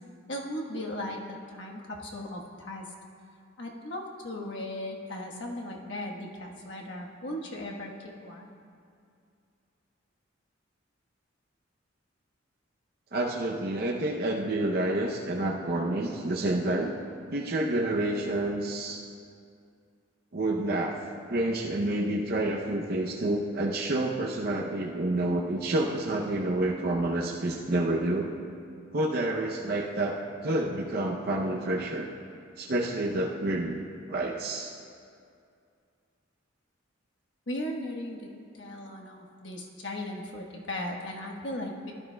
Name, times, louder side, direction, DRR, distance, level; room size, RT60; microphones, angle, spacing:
voice 1, 0.3-2.9 3.6-8.5 37.5-41.9, left 1 dB, 65° left, -1 dB, 1.2 m, -37 dB
voice 2, 13.1-16.9 17.3-19.0 20.3-21.0 21.3-28.3 28.9-32.1 32.6-33.8 34.1-34.7, right 1 dB, 50° right, 0 dB, 0.6 m, -29 dB
16.0 x 12.0 x 2.2 m, 2.4 s
head